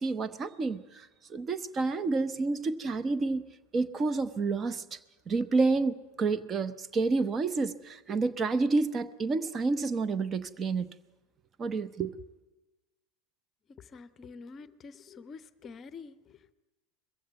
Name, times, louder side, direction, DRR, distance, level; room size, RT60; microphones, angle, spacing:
voice 1, 0.0-3.4 3.7-4.8 5.3-10.9 11.6-12.1, right 3 dB, 25° right, 14 dB, 0.9 m, -29 dB
voice 2, 13.7-16.5, left 5 dB, 30° left, 16 dB, 0.7 m, -47 dB
21.5 x 15.5 x 9.1 m, 1.1 s
figure-of-eight pair, 80°, 0 cm